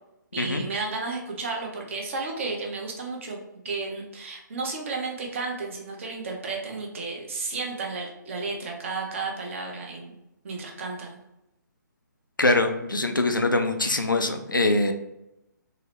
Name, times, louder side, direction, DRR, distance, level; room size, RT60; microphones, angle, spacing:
voice 1, 0.3-3.4 3.6-10.2 10.4-11.2, right 3 dB, 40° right, 0 dB, 0.7 m, -33 dB
voice 2, 12.4-14.9, left 2 dB, 90° left, 5 dB, 0.5 m, -23 dB
3.8 x 2.0 x 2.9 m, 0.88 s
figure-of-eight pair, 135°, 10 cm